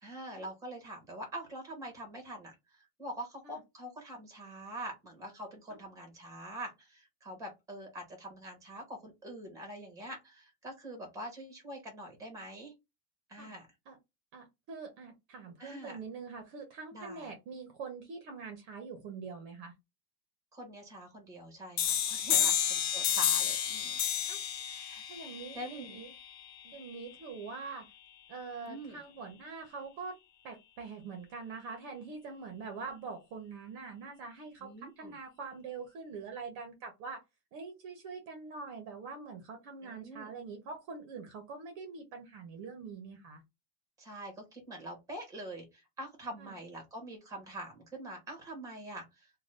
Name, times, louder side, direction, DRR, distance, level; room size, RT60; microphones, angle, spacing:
voice 1, 0.0-12.7 13.3-13.7 15.6-16.0 16.9-17.3 20.5-24.3 24.7-25.0 25.5-26.0 28.7-29.0 34.6-35.1 39.8-40.3 44.0-49.3, right 1 dB, 5° right, 1.0 m, -45 dB
voice 2, 14.3-19.7 22.4-22.5 24.3-24.4 25.1-26.1 26.6-27.9 28.3-30.2 30.4-37.2 37.5-43.4 46.4-46.5, right 4 dB, 40° right, 0.7 m, -44 dB
sound 1, 21.8-27.2, left 9 dB, 40° left, 0.4 m, -31 dB
2.6 x 2.3 x 3.3 m
supercardioid pair, 155°, 46 cm